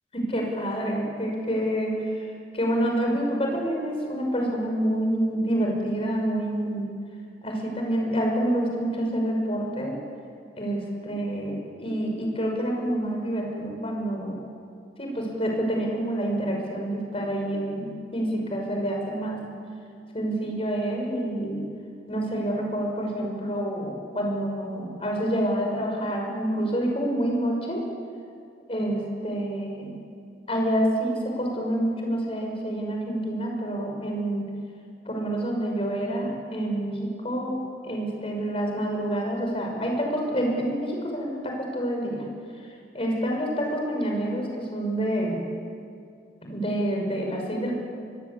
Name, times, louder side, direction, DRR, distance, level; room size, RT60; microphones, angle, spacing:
voice 1, 0.1-2.2 2.5-6.9 7.4-9.9 10.6-14.4 15.0-19.4 20.1-21.6 22.1-27.8 28.7-30.0 30.5-34.5 35.1-37.6 37.8-42.2 42.9-45.4 46.4-47.7, right 1 dB, 35° left, 1 dB, 5.9 m, -27 dB
25.0 x 21.0 x 8.6 m, 2.3 s
head